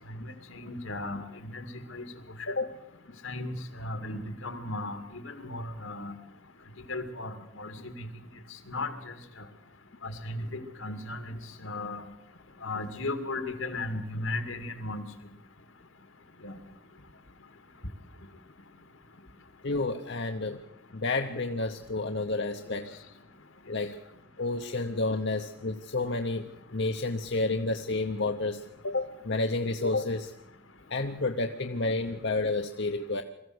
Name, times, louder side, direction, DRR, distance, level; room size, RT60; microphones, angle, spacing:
voice 1, 0.5-2.1 3.2-3.5 3.8-5.0 5.3-6.1 6.9-7.9 8.7-8.9 10.0-11.4 11.6-12.0 12.6-15.0 16.4-16.5 22.7-22.8, left 2 dB, 85° left, 8 dB, 2.3 m, -36 dB
voice 2, 19.6-20.6 20.9-22.9 23.7-24.0 24.4-30.3 30.9-33.2, left 2 dB, 60° left, 5 dB, 1.0 m, -30 dB
22.5 x 14.5 x 8.0 m, 0.87 s
head